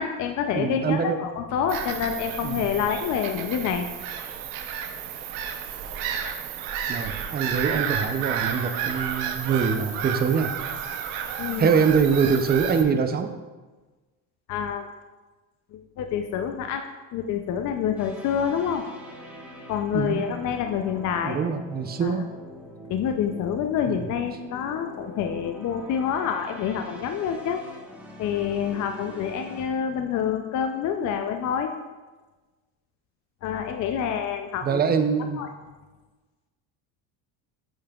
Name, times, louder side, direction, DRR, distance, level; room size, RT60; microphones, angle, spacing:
voice 1, 0.0-3.9 11.4-11.7 14.5-14.9 15.7-16.8 17.1-18.8 19.7-21.4 22.0-22.1 22.9-27.6 28.2-31.7 33.4-34.8 35.3-35.5, left 8 dB, 45° left, 5 dB, 0.5 m, -27 dB
voice 2, 0.5-1.2 2.4-2.6 6.9-10.5 11.6-13.3 19.9-20.2 21.2-22.3 23.9-24.0 34.6-35.4, right 6 dB, 25° right, 8 dB, 0.5 m, -24 dB
Bird vocalization bird call bird song / Gull seagull, 1.7-12.8, right 8 dB, 90° right, 0.8 m, -31 dB
sound 1, 18.0-29.7, left 1 dB, 5° right, 1.0 m, -43 dB
8.6 x 5.5 x 2.3 m, 1.3 s
cardioid pair, 110°, 42 cm